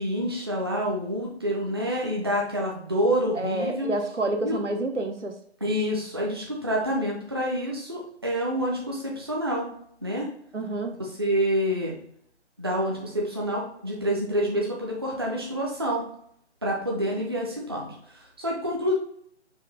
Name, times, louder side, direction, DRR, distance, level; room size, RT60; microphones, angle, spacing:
voice 1, 0.0-3.9 4.4-4.6 5.6-9.7 10.0-10.3 11.0-12.0 12.6-16.1 16.6-18.9, equal, 25° right, -2 dB, 0.5 m, -27 dB
voice 2, 3.3-5.4 10.5-10.9, right 2 dB, 85° right, 5 dB, 0.8 m, -28 dB
5.3 x 2.6 x 3.4 m, 0.66 s
figure-of-eight pair, 145°, 35 cm